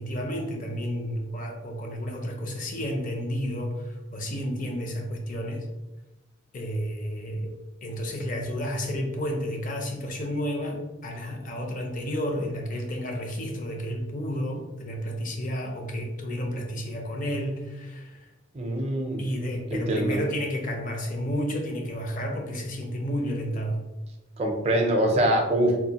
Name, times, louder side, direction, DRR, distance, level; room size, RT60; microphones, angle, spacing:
voice 1, 0.0-5.7 6.5-7.5 7.8-18.3 19.2-23.8, equal, 40° left, 2 dB, 0.5 m, -31 dB
voice 2, 18.5-19.2 19.7-20.2 24.4-25.8, right 1 dB, 30° right, 2 dB, 0.5 m, -24 dB
3.6 x 2.4 x 2.8 m, 1.0 s
head